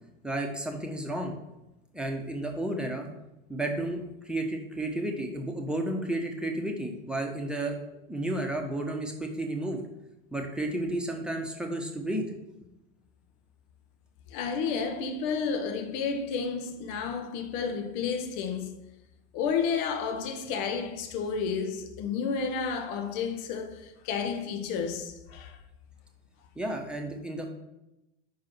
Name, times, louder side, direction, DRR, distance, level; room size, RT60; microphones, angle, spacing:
voice 1, 0.2-1.4 1.9-3.1 3.5-7.8 8.1-9.8 10.3-12.2 26.6-27.5, right 1 dB, ahead, 1.1 m, -32 dB
voice 2, 14.3-18.8 19.3-25.6, left 5 dB, 50° left, 1.0 m, -31 dB
5.5 x 4.7 x 6.1 m
figure-of-eight pair, 80°, 39 cm